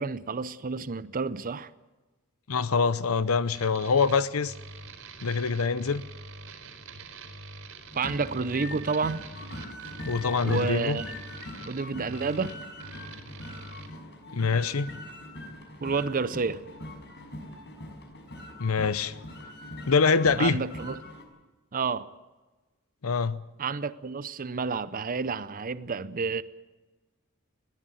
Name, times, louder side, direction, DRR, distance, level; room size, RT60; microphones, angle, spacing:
voice 1, 0.0-1.7 7.9-9.2 10.4-11.1 11.6-12.5 15.8-16.6 20.4-21.0 21.7-22.1 23.6-26.4, right 4 dB, 40° right, 0.7 m, -30 dB
voice 2, 2.5-4.5 5.2-6.0 10.1-11.0 14.3-14.9 18.6-19.1 19.9-20.6 23.0-23.4, left 5 dB, 80° left, 0.8 m, -24 dB
sound 1, 3.5-13.9, right 3 dB, 75° right, 4.5 m, -45 dB
sound 2, 7.9-21.2, left 1 dB, 55° left, 5.8 m, -42 dB
21.5 x 15.0 x 9.2 m
head